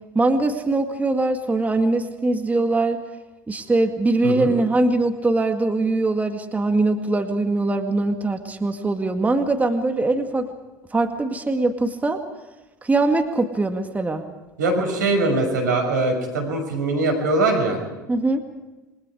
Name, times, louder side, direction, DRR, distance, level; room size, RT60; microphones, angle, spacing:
voice 1, 0.1-3.0 3.5-10.5 10.9-12.2 12.8-14.3 18.1-18.4, right 2 dB, 15° right, 5 dB, 2.0 m, -22 dB
voice 2, 14.6-17.8, right 2 dB, 80° right, 4 dB, 6.3 m, -22 dB
28.5 x 23.5 x 5.0 m, 1.1 s
hypercardioid pair, 75°, 10 cm